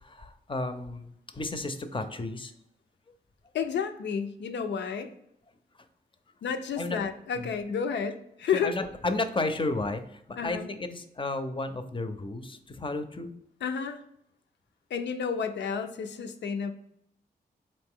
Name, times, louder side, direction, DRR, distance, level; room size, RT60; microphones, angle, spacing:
voice 1, 0.0-2.5 6.8-7.0 7.4-7.5 8.5-13.3, left 2 dB, 30° left, 9 dB, 0.5 m, -33 dB
voice 2, 3.5-5.1 6.4-8.7 10.4-10.7 13.6-14.0 14.9-16.7, left 6 dB, 80° left, 8 dB, 0.4 m, -31 dB
3.9 x 2.6 x 3.6 m, 0.74 s
cardioid pair, 50°, 18 cm